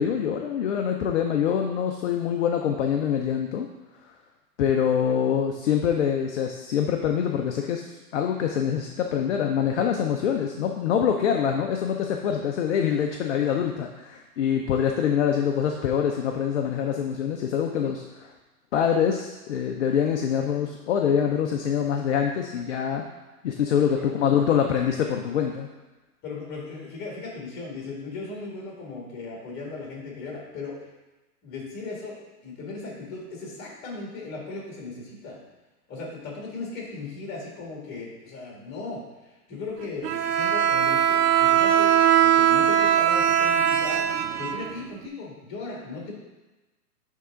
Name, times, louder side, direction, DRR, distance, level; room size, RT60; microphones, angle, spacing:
voice 1, 0.0-3.7 4.6-18.3 18.7-23.0 23.4-25.7, left 8 dB, 50° left, 2 dB, 0.7 m, -25 dB
voice 2, 26.2-30.7 31.4-32.2 32.4-35.4 35.9-39.0 39.5-41.9 42.2-44.1 44.4-46.2, left 3 dB, 20° left, -2 dB, 2.1 m, -37 dB
Bowed string instrument, 40.0-45.1, right 9 dB, 85° right, 0.6 m, -21 dB
10.5 x 3.7 x 3.8 m, 1.1 s
hypercardioid pair, 145°, 47 cm